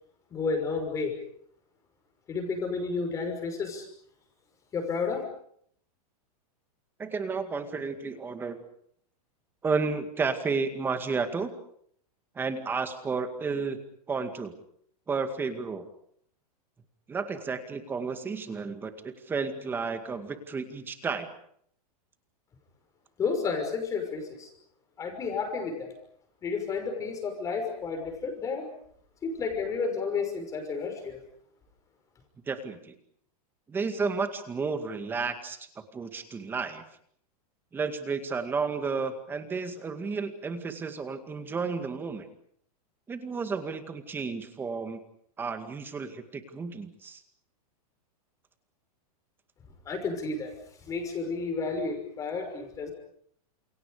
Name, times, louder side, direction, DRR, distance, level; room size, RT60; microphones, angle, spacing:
voice 1, 0.3-1.2 2.3-3.9 4.7-5.2 23.2-24.5 25.0-25.9 26.4-28.7 29.2-31.2 49.9-50.5 50.9-52.9, left 4 dB, 15° left, 4 dB, 5.9 m, -31 dB
voice 2, 7.0-8.6 9.6-11.5 12.4-13.8 14.1-14.5 15.1-15.8 17.1-21.3 32.5-32.9 33.7-35.7 35.9-36.8 37.7-42.3 43.1-45.0 45.4-47.2, right 4 dB, 10° right, 8 dB, 2.1 m, -32 dB
29.5 x 28.5 x 5.1 m, 0.65 s
supercardioid pair, 170°, 20 cm